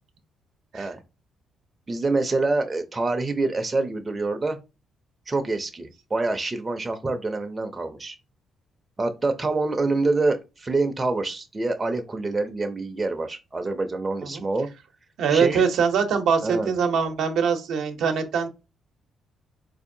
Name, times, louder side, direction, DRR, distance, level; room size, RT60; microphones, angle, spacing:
voice 1, 1.9-4.6 5.3-8.2 9.0-14.7 15.3-15.6 16.4-16.7, right 3 dB, 25° right, 0.6 m, -26 dB
voice 2, 15.2-18.5, right 6 dB, 75° right, 0.7 m, -23 dB
4.0 x 2.7 x 2.6 m
cardioid pair, 90°, 0 cm